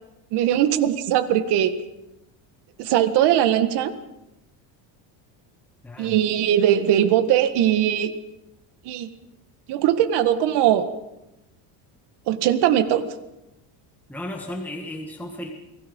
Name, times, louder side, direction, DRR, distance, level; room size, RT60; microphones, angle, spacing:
voice 1, 0.3-1.7 2.8-3.9 6.0-8.1 8.9-9.1 9.7-10.9 12.3-13.0, right 11 dB, 55° right, 10 dB, 1.9 m, -20 dB
voice 2, 5.8-6.2 14.1-15.5, left 1 dB, 5° left, 1 dB, 2.0 m, -34 dB
30.0 x 20.0 x 5.5 m, 0.91 s
cardioid pair, 160°, 49 cm